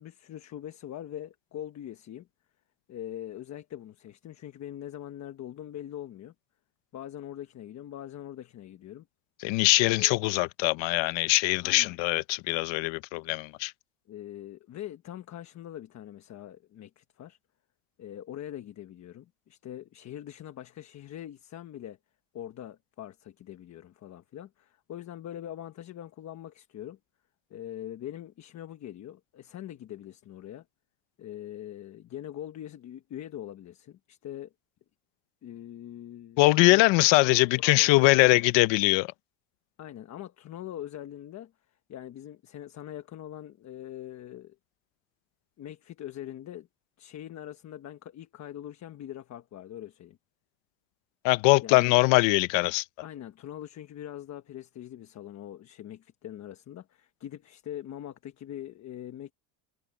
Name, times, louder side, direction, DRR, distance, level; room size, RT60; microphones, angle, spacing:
voice 1, 0.0-2.3 2.9-6.3 6.9-9.1 9.8-10.2 11.6-11.9 14.1-17.4 18.0-22.0 22.3-27.0 27.5-30.6 31.2-34.5 35.4-36.8 37.2-38.5 39.8-41.5 41.9-44.6 45.6-46.7 47.0-50.2 51.6-51.9 53.0-59.3, left 11 dB, 35° left, 1.2 m, -42 dB
voice 2, 9.4-13.7 36.4-39.1 51.2-52.8, left 22 dB, 70° left, 0.9 m, -22 dB
cardioid pair, 165°, 47 cm